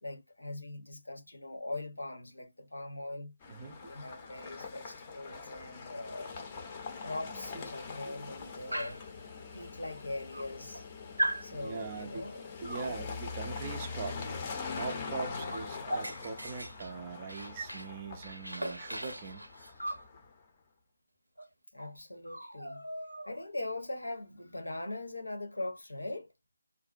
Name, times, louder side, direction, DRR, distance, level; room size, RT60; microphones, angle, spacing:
voice 1, 0.0-3.3 3.8-6.3 6.9-9.0 9.5-10.9 11.4-12.5 12.8-13.1 15.2-15.7 21.7-22.8 23.3-26.3, left 2 dB, 75° left, 0.9 m, -41 dB
sound 1, 3.4-20.4, left 4 dB, 25° left, 0.6 m, -43 dB
Dog, 8.7-9.1 10.0-10.1 10.3-10.8 11.2-11.5 12.6-12.9 14.8-14.9 15.2-17.9 18.2-20.1 21.4-21.5 21.8-22.0 22.2-23.5, right 1 dB, 85° right, 0.5 m, -38 dB
voice 2, 11.5-12.2 12.6-14.2 14.7-19.4, right 5 dB, 25° right, 0.4 m, -41 dB
2.4 x 2.1 x 2.4 m
figure-of-eight pair, 150°, 0 cm